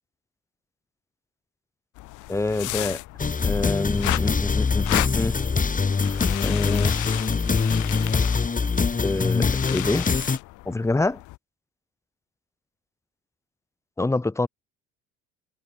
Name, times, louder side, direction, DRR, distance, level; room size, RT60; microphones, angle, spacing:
sound 1, 2.0-11.4, left 20 dB, 60° left, 1.7 m, -35 dB
voice 1, 2.3-3.0 3.4-5.3 6.4-6.9 9.0-10.1 10.7-11.2 14.0-14.5, left 2 dB, 10° left, 1.1 m, -26 dB
sound 2, 3.2-10.4, left 5 dB, 25° left, 2.7 m, -23 dB
open air
hypercardioid pair, 65°, 34 cm